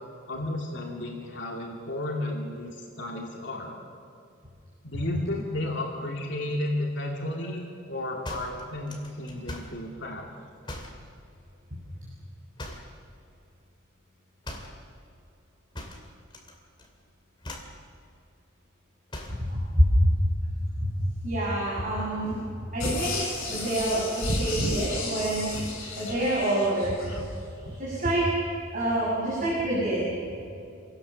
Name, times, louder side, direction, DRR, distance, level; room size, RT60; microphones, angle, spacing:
voice 1, 0.3-2.7 3.0-3.7 4.8-10.3, left 1 dB, 60° left, -1 dB, 2.6 m, -32 dB
sound 1, 8.2-9.8 10.6-11.0 12.6-13.0 14.4-14.8 15.7-16.5 16.8-17.1 17.4-17.8 19.1-19.5, left 1 dB, 25° left, 2.6 m, -40 dB
voice 2, 19.3-20.1 20.7-22.4 22.7-25.5 26.0-27.0 27.8-28.3 28.7-30.2, right 1 dB, 40° right, -7 dB, 6.5 m, -26 dB
sound 2, 22.8-27.2 27.7-27.8, left 1 dB, 80° left, 7.5 m, -32 dB
27.0 x 18.0 x 7.1 m, 2.5 s
head